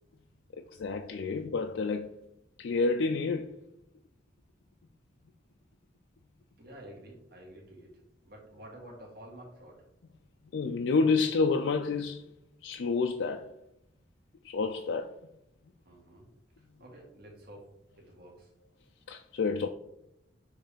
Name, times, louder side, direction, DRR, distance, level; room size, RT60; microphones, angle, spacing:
voice 1, 0.6-2.1 2.6-3.6 10.5-12.3 12.6-13.5 14.4-15.2 19.1-19.7, left 4 dB, 80° left, 0.4 m, -29 dB
voice 2, 6.6-8.0 8.2-9.8 15.8-16.3 16.8-17.7 18.0-18.5, right 1 dB, 55° right, 1.7 m, -50 dB
6.7 x 3.4 x 5.0 m
head